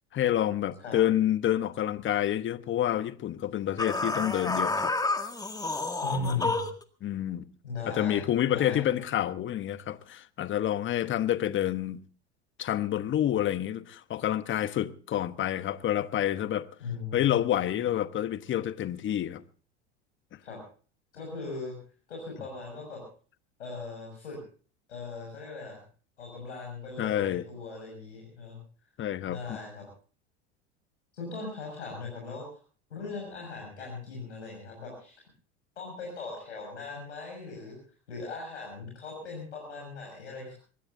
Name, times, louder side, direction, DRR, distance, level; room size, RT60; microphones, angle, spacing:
voice 1, 0.1-4.9 6.1-6.5 7.0-7.5 7.9-12.0 12.6-16.7 17.1-19.4 27.0-27.4 29.0-29.6, left 11 dB, 35° left, 1.1 m, -28 dB
sound 1, 3.8-6.8, left 3 dB, 10° left, 1.9 m, -29 dB
voice 2, 6.0-6.6 7.6-8.2 8.5-9.0 16.8-17.4 20.4-20.6 21.1-21.7 22.1-23.0 23.6-24.4 24.9-25.8 26.2-28.6 29.3-29.8 31.1-32.6 32.9-35.2 35.8-37.8 38.1-40.5, left 3 dB, 90° left, 6.6 m, -39 dB
23.0 x 20.0 x 2.7 m
hypercardioid pair, 85°, 34 cm